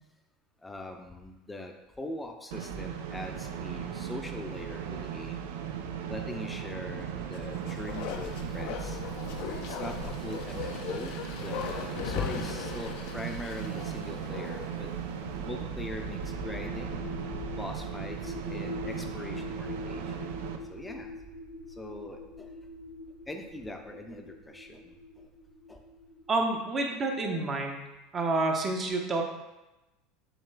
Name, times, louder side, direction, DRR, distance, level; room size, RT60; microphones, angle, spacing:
voice 1, 0.6-5.5 6.1-9.0 9.7-14.9 15.4-17.0 17.6-20.1 20.7-21.1 21.8-22.5 23.3-24.9 25.7-25.8 26.9-27.0, left 1 dB, 10° left, 3 dB, 0.6 m, -42 dB
sound 1, 2.5-20.6, right 8 dB, 70° right, 0.4 m, -37 dB
Bark, 7.3-14.8 15.2-15.3, left 8 dB, 60° left, 0.5 m, -38 dB
sound 2, 15.0-26.8, left 1 dB, 50° right, 1.4 m, -42 dB
voice 2, 26.3-27.8 28.1-29.2, right 2 dB, 30° right, 2 dB, 0.8 m, -28 dB
6.8 x 3.1 x 2.2 m, 1.0 s
figure-of-eight pair, 75°, 0 cm